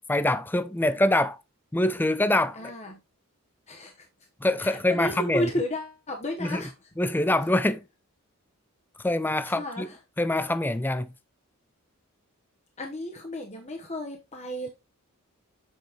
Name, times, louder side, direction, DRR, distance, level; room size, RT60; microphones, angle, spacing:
voice 1, 0.1-1.4 1.7-2.6 4.4-5.5 6.4-6.6 7.0-7.8 9.0-9.9 10.2-11.1, left 1 dB, 10° left, 0.4 m, -24 dB
voice 2, 2.6-3.0 3.7-4.1 4.6-6.7 9.5-10.0 12.8-14.7, left 1 dB, 30° left, 1.0 m, -33 dB
8.0 x 5.2 x 3.5 m
head